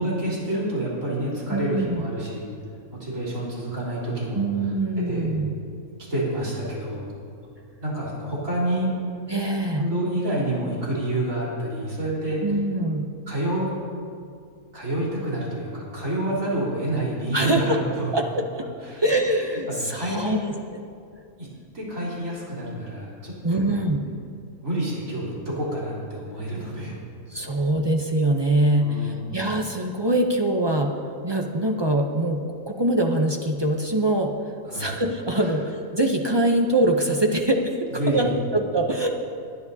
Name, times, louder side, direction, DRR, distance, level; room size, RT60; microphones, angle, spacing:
voice 1, 0.0-2.5 3.0-4.4 5.1-5.3 6.1-7.0 7.8-8.9 9.8-12.4 13.3-13.7 14.7-18.2 18.9-19.0 19.7-20.4 21.4-21.5 21.7-23.7 24.6-27.0 28.8-29.4 34.7-34.9 35.4-35.5 37.9-38.4, right 1 dB, 65° right, -7 dB, 3.9 m, -28 dB
voice 2, 1.5-2.1 4.3-5.5 9.3-9.8 12.4-13.1 17.3-17.8 18.1-18.7 19.0-20.5 23.4-24.1 27.3-30.9 31.2-34.3 34.7-39.1, right 1 dB, 45° right, 2 dB, 0.3 m, -23 dB
22.0 x 9.7 x 2.7 m, 2.4 s
omnidirectional pair, 1.5 m